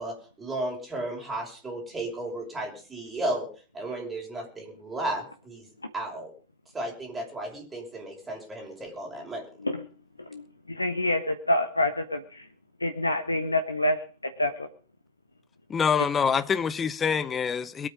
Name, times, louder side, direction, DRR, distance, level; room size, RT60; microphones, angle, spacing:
voice 1, 0.0-6.3 6.7-9.5, right 1 dB, 15° right, 6.0 m, -34 dB
voice 2, 10.3-12.4 12.8-14.0 14.4-14.7, left 1 dB, 85° left, 1.2 m, -27 dB
voice 3, 15.7-17.9, left 6 dB, 20° left, 1.0 m, -25 dB
22.5 x 8.9 x 5.3 m
figure-of-eight pair, 90°, 0 cm